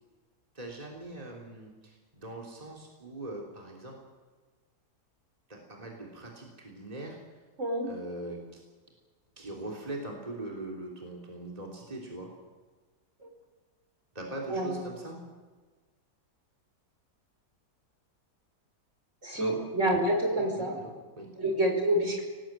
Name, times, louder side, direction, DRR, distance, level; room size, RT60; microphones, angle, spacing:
voice 1, 0.5-4.0 5.5-7.2 7.9-8.6 9.4-12.3 14.2-15.2 19.3-19.6 20.3-21.3, right 2 dB, 25° right, -1 dB, 3.6 m, -41 dB
voice 2, 7.6-7.9 13.2-13.3 14.5-14.8 19.2-20.8 21.4-22.2, right 1 dB, 50° right, 2 dB, 5.1 m, -27 dB
26.5 x 18.5 x 9.1 m, 1.4 s
omnidirectional pair, 1.7 m